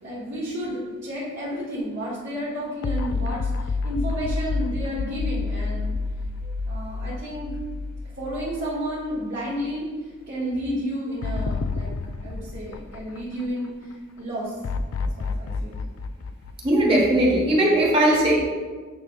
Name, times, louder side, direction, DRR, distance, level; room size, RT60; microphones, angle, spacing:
voice 1, 0.0-5.9 6.4-7.5 8.2-9.9 10.3-11.9 12.2-14.5 15.1-15.8, equal, 55° right, -10 dB, 1.7 m, -31 dB
sound 1, 2.8-9.2 9.5-9.6 11.2-13.7 14.6-17.4, left 3 dB, 80° left, 0.4 m, -29 dB
voice 2, 16.6-18.4, right 1 dB, 25° right, -3 dB, 1.2 m, -19 dB
9.4 x 4.9 x 2.4 m, 1.5 s
head